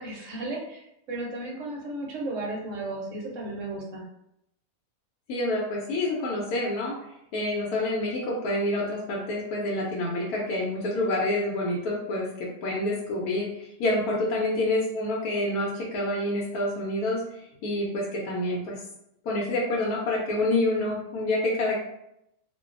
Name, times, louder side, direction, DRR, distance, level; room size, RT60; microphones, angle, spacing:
voice 1, 0.0-4.0, right 2 dB, 65° right, -2 dB, 0.9 m, -34 dB
voice 2, 5.3-18.8 19.2-21.7, left 1 dB, 80° left, -4 dB, 1.1 m, -28 dB
2.6 x 2.3 x 2.4 m, 0.81 s
omnidirectional pair, 1.6 m